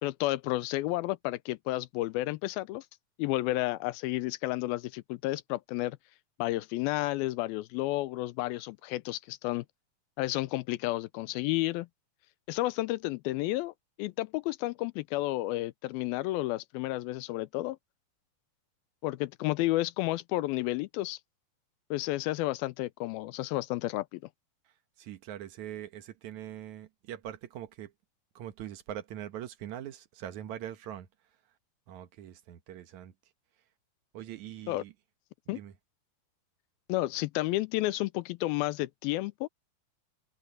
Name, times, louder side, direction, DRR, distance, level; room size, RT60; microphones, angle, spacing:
voice 1, 0.0-2.9 3.2-6.0 6.4-9.7 10.2-11.9 12.5-17.8 19.0-21.2 21.9-24.2 34.7-34.8 35.5-35.6 36.9-39.5, left 18 dB, 85° left, 2.4 m, -31 dB
voice 2, 25.0-27.9 28.4-31.1 31.9-33.1 34.1-34.9 35.5-35.7, right 11 dB, 65° right, 2.1 m, -42 dB
open air
omnidirectional pair, 4.4 m